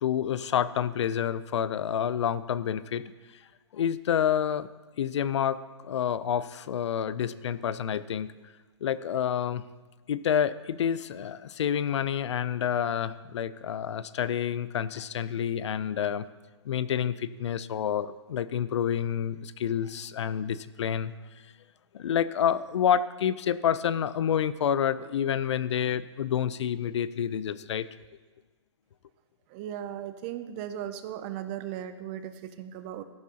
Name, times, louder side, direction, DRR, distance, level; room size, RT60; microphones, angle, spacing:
voice 1, 0.0-3.0 3.7-4.7 5.0-8.3 8.8-9.6 10.1-16.3 16.7-21.1 21.9-27.9, left 9 dB, 70° left, 16 dB, 0.5 m, -28 dB
voice 2, 29.5-33.0, right 10 dB, 25° right, 11 dB, 0.4 m, -37 dB
13.5 x 11.0 x 2.8 m, 1.3 s
hypercardioid pair, 160°, 15 cm